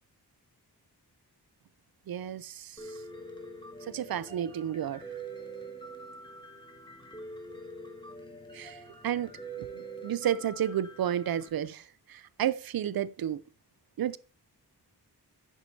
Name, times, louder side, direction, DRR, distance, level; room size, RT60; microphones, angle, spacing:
voice 1, 2.1-2.9 3.9-5.0 8.5-9.3 9.6-13.4 14.0-14.2, right 10 dB, 65° right, 0.5 m, -32 dB
Piano, 2.8-11.5, right 3 dB, 10° left, 1.3 m, -45 dB
10.5 x 7.3 x 2.7 m
wide cardioid pair, 115°, 39 cm